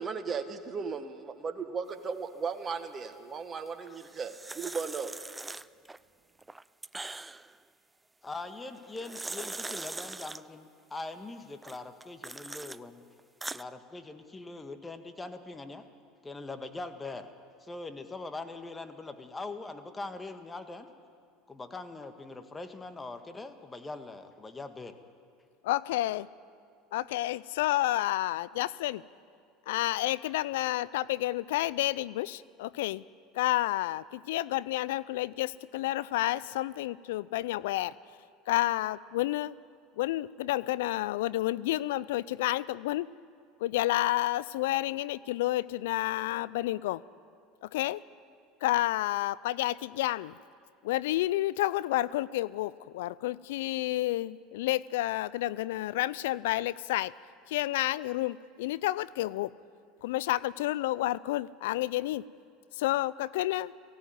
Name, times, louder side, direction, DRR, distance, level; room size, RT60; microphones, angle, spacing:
voice 1, 0.0-5.1, right 5 dB, 30° right, 8 dB, 1.7 m, -36 dB
sound 1, 3.9-6.0 6.4-7.6 8.8-10.4 11.6-12.8 13.2-13.6, right 2 dB, 15° right, 0.4 m, -41 dB
voice 2, 8.2-13.1 13.5-15.8 16.2-17.3 17.6-20.9 21.5-25.0, left 3 dB, 20° left, 8 dB, 1.7 m, -42 dB
voice 3, 25.6-26.3 26.9-29.0 29.7-33.0 33.4-37.9 38.5-39.5 40.0-43.1 43.6-47.0 47.6-48.0 48.6-50.3 50.8-57.1 57.5-59.5 60.0-62.2 62.8-63.7, left 16 dB, 75° left, 19 dB, 0.4 m, -30 dB
18.0 x 15.5 x 9.4 m, 2.2 s
hypercardioid pair, 80°, 0 cm